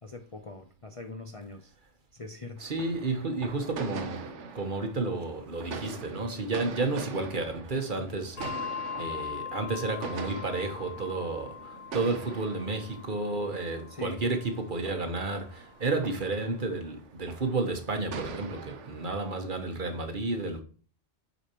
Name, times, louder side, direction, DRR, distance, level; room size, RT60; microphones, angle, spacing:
voice 1, 0.0-1.7 2.1-2.7 13.9-14.2, left 3 dB, 35° left, 0.6 m, -42 dB
voice 2, 2.6-8.5 9.0-20.6, right 3 dB, 45° right, 1.2 m, -32 dB
sound 1, 2.6-19.5, right 4 dB, 90° right, 1.1 m, -43 dB
Bell, 8.4-15.2, left 8 dB, 50° left, 1.3 m, -41 dB
8.2 x 5.0 x 2.9 m
omnidirectional pair, 1.2 m